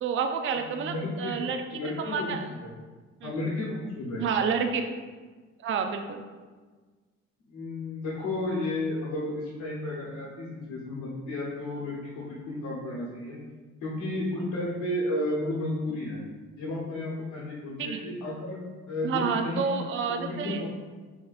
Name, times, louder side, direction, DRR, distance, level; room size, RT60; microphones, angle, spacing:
voice 1, 0.0-1.6 2.0-2.4 3.2-3.3 4.2-4.9 5.6-6.2 17.8-18.0 19.0-20.6, right 6 dB, 45° right, 6 dB, 0.4 m, -29 dB
voice 2, 0.7-2.3 2.6-2.7 3.2-4.2 7.5-13.4 13.8-16.2 16.6-18.6 18.9-19.8 20.1-20.7, left 1 dB, 85° left, -6 dB, 1.0 m, -33 dB
4.1 x 3.7 x 2.4 m, 1.4 s
cardioid pair, 90°, 30 cm